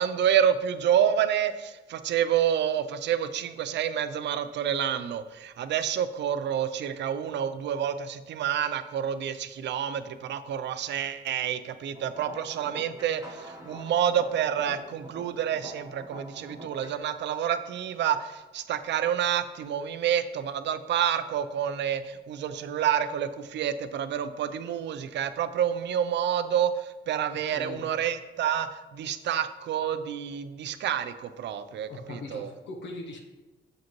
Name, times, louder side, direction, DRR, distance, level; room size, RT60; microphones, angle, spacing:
voice 1, 0.0-32.5, right 9 dB, 65° right, 11 dB, 0.5 m, -28 dB
sound 1, 11.9-17.0, right 1 dB, 15° right, 1.2 m, -45 dB
voice 2, 27.5-27.9 29.2-29.3 31.9-33.2, left 2 dB, 65° left, 2 dB, 0.9 m, -40 dB
6.9 x 5.1 x 3.0 m, 1.1 s
cardioid pair, 90°, 20 cm